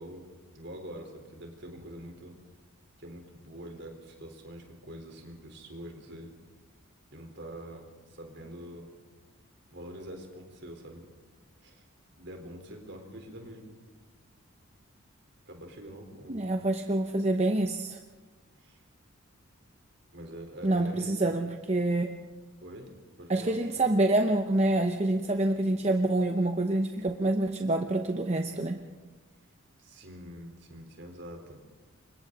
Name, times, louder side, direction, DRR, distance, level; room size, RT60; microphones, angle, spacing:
voice 1, 0.0-2.4 3.0-6.3 7.1-8.9 9.7-11.0 11.6-11.8 12.1-13.7 15.5-16.5 18.6-18.8 20.1-21.1 22.6-22.9 23.2-23.6 29.8-31.6, equal, 55° right, 3 dB, 4.1 m, -45 dB
voice 2, 16.3-18.0 20.6-22.2 23.3-28.8, right 2 dB, 30° right, 5 dB, 0.8 m, -27 dB
29.5 x 24.5 x 4.0 m, 1.3 s
head